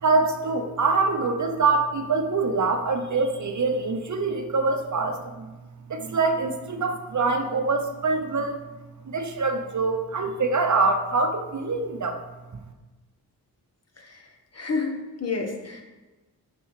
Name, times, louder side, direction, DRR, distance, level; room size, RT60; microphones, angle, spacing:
voice 1, 0.0-5.5 5.9-8.6 9.0-12.2, right 3 dB, 50° right, 5 dB, 0.9 m, -24 dB
voice 2, 14.0-14.3 14.5-15.8, left 4 dB, 40° left, 3 dB, 1.3 m, -30 dB
6.6 x 5.2 x 4.8 m, 1.2 s
cardioid pair, 65°, 37 cm